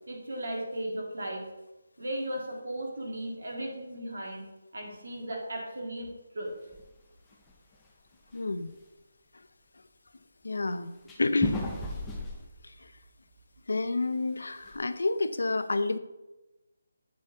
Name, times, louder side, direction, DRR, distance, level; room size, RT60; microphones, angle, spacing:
voice 1, 0.1-1.4 2.0-4.4 4.7-6.5, right 1 dB, 60° right, 0 dB, 2.0 m, -36 dB
sound 1, 6.7-7.0 7.3-7.7 8.1-8.2 8.7-8.8 11.1-13.5 13.9-14.0 14.3-14.8, left 2 dB, 5° left, 0.4 m, -36 dB
voice 2, 8.3-8.7 10.4-10.9 11.2-11.6 12.0-12.1 12.6-12.9 13.7-16.0, left 2 dB, 70° left, 12 dB, 0.5 m, -29 dB
8.3 x 4.4 x 3.6 m, 1.0 s
hypercardioid pair, 180°, 0 cm